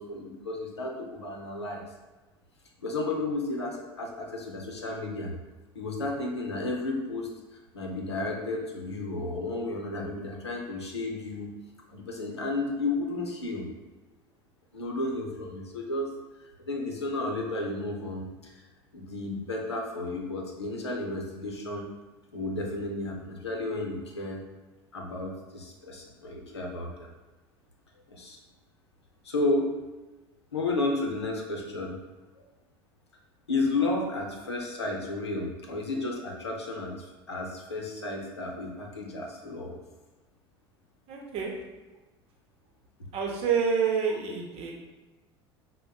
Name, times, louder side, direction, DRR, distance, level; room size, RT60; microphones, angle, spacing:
voice 1, 0.0-1.8 2.8-5.3 5.7-11.5 11.9-13.7 14.7-16.1 16.7-18.6 18.9-21.9 22.3-24.4 24.9-27.1 28.1-28.4 29.2-29.7 30.5-32.0 32.4-32.5 33.5-39.8, left 2 dB, 85° left, 0 dB, 0.6 m, -32 dB
voice 2, 41.1-41.5 43.1-44.7, right 6 dB, 45° right, 0 dB, 0.8 m, -27 dB
5.0 x 2.1 x 2.3 m, 1.2 s
figure-of-eight pair, 70°, 14 cm